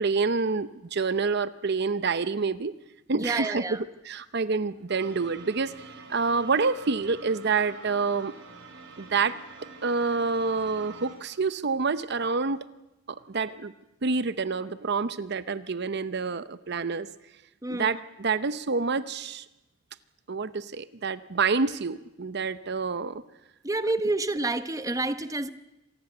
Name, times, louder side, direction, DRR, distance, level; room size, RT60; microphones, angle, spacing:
voice 1, 0.0-2.7 3.1-3.8 4.0-5.7 6.1-8.3 9.0-9.4 9.8-12.6 13.1-13.7 14.0-17.1 17.7-19.4 20.3-23.2, right 4 dB, 60° right, 14 dB, 0.7 m, -27 dB
voice 2, 3.1-3.8 17.6-17.9 23.6-25.5, right 2 dB, 15° right, 12 dB, 0.9 m, -28 dB
sound 1, 4.9-11.2, right 4 dB, 80° right, 4.8 m, -46 dB
26.5 x 19.0 x 7.9 m, 0.96 s
head